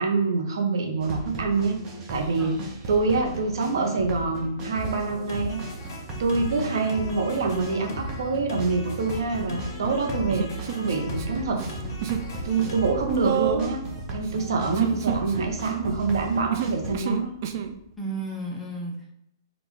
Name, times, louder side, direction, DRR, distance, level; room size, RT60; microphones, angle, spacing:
voice 1, 0.0-1.8 2.1-2.6 2.9-5.6 6.2-11.6 12.4-13.8 14.1-17.4, right 4 dB, 70° right, 3 dB, 1.0 m, -26 dB
sound 1, 1.0-17.0, right 1 dB, 25° right, 0.8 m, -37 dB
sound 2, 4.7-12.9, left 1 dB, 50° left, 1.3 m, -37 dB
Human voice, 10.3-11.3 11.5-12.3 12.5-17.7, right 9 dB, 50° right, 0.4 m, -30 dB
voice 2, 18.0-19.1, right 2 dB, 5° left, -2 dB, 0.6 m, -33 dB
3.9 x 2.5 x 4.7 m, 0.78 s
hypercardioid pair, 155°, 2 cm